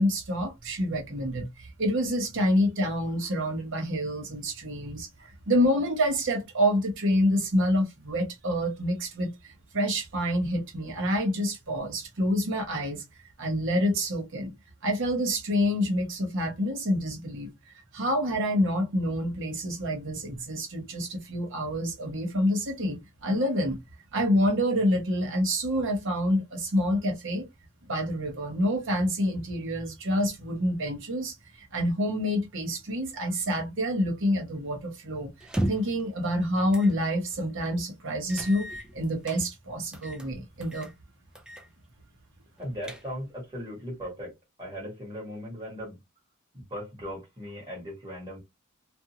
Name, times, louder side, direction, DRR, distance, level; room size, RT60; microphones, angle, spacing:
voice 1, 0.0-13.0 13.4-14.5 14.8-17.5 17.9-23.8 24.1-27.5 27.9-35.3 35.7-40.9, equal, 60° right, 0.9 m, -27 dB
sound 1, 35.4-36.0 36.7-36.9 37.3-37.4 38.3-39.4 39.9-40.3 40.6-40.9 41.4-41.7 42.0-42.1 42.6-43.4, right 1 dB, 5° right, 0.3 m, -34 dB
voice 2, 42.6-44.3 44.6-46.0 46.5-48.4, equal, 20° right, 1.4 m, -38 dB
2.5 x 2.4 x 2.8 m
head